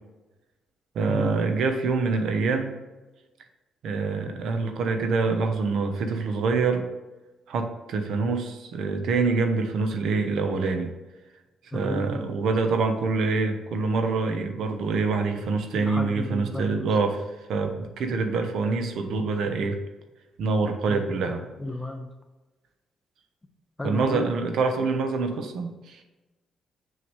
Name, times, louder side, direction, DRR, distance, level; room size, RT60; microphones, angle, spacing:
voice 1, 0.9-2.8 3.8-6.9 7.5-10.9 11.7-17.2 17.5-19.8 20.4-21.5 23.8-26.0, right 4 dB, 75° right, 6 dB, 1.0 m, -25 dB
voice 2, 11.7-12.2 15.7-16.9 20.9-21.0 21.6-22.1 23.8-24.3, left 1 dB, 10° left, 4 dB, 1.0 m, -33 dB
7.0 x 6.3 x 3.2 m, 1.1 s
cardioid pair, 90°, 0 cm